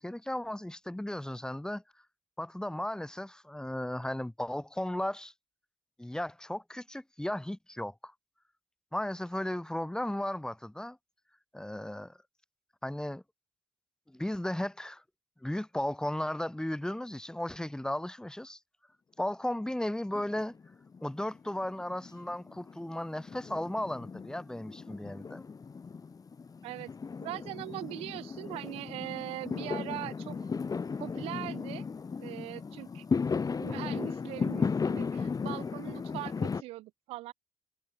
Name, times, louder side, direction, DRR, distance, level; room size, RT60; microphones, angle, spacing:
voice 1, 0.0-1.8 2.4-5.3 6.0-8.1 8.9-11.0 11.5-12.2 12.8-13.2 14.1-15.0 15.4-18.6 19.2-20.5 21.0-25.5, left 1 dB, 5° left, 6.8 m, -35 dB
Fireworks, 20.1-21.1 21.3-36.6, left 5 dB, 40° left, 4.6 m, -35 dB
voice 2, 27.2-30.5 31.0-31.8 32.2-33.0 33.6-37.3, right 18 dB, 80° right, 1.5 m, -41 dB
supercardioid pair, 65°, 10 cm